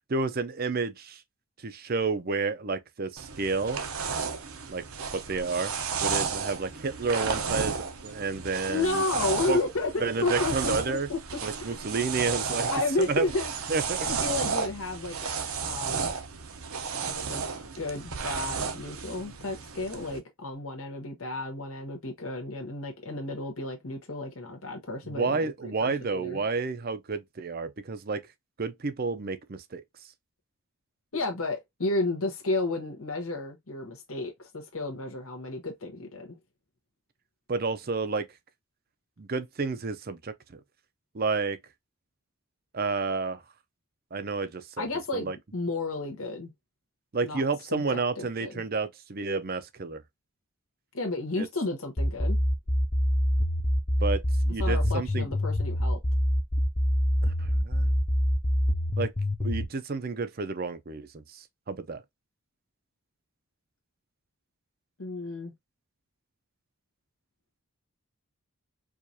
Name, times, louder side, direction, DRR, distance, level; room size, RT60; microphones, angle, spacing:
voice 1, 0.1-1.2 1.6-3.8 4.7-4.8 5.1-5.7 6.0-9.0 9.5-9.6 10.0-11.1 11.4-12.7 13.0-13.3 13.7-14.1 25.1-28.2 28.6-29.8 37.5-38.3 39.2-40.6 41.1-41.6 42.7-43.4 44.1-44.9 45.1-45.4 47.1-50.0 51.4-51.5 54.0-55.3 57.2-57.9 59.0-59.1 59.4-62.0, right 4 dB, 40° right, 0.6 m, -30 dB
sound 1, 3.2-20.2, right 5 dB, 70° right, 0.8 m, -33 dB
voice 2, 8.7-11.2 11.6-11.8 12.7-13.5 14.0-16.1 17.1-17.5 17.8-26.4 31.1-36.4 44.8-46.5 47.2-47.4 47.7-48.6 50.9-52.4 54.6-56.0 65.0-65.5, left 2 dB, 70° left, 1.0 m, -32 dB
sound 2, 52.0-59.6, equal, 15° left, 0.5 m, -25 dB
4.8 x 2.5 x 2.7 m
head